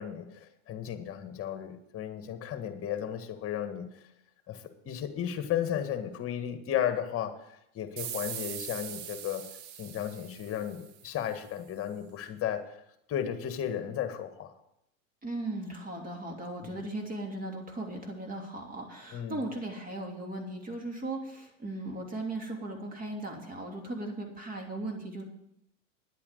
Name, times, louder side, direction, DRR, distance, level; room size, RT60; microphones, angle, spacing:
voice 1, 0.0-3.9 4.5-7.3 7.7-9.4 9.8-12.8 13.1-14.5 16.6-16.8 19.1-19.4, left 10 dB, 35° left, 8 dB, 1.7 m, -34 dB
sound 1, 8.0-11.3, right 10 dB, 65° right, 1.3 m, -41 dB
voice 2, 15.2-25.2, right 2 dB, 20° right, 2 dB, 3.1 m, -37 dB
10.5 x 8.5 x 6.7 m, 0.82 s
hypercardioid pair, 105°, 39 cm